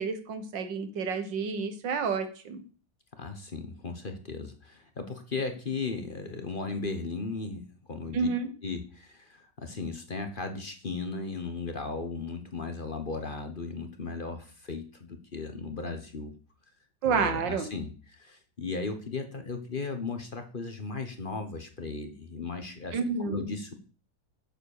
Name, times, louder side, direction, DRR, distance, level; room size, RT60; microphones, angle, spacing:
voice 1, 0.0-2.6 8.1-8.5 17.0-17.7 22.9-23.5, right 5 dB, 85° right, 9 dB, 2.0 m, -29 dB
voice 2, 3.2-7.6 7.9-8.3 8.6-16.3 17.0-23.7, left 3 dB, 35° left, 7 dB, 1.1 m, -36 dB
7.9 x 7.5 x 6.6 m, 0.40 s
omnidirectional pair, 1.9 m